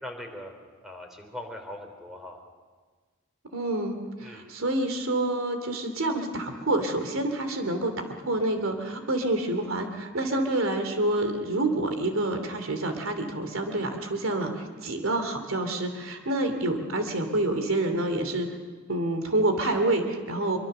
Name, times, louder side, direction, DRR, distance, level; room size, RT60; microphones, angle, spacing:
voice 1, 0.0-0.5 0.8-2.4 4.2-4.4, left 1 dB, ahead, 3 dB, 3.4 m, -40 dB
voice 2, 3.5-18.5 18.9-20.6, right 2 dB, 85° right, 6 dB, 2.8 m, -28 dB
24.0 x 23.5 x 6.7 m, 1.4 s
head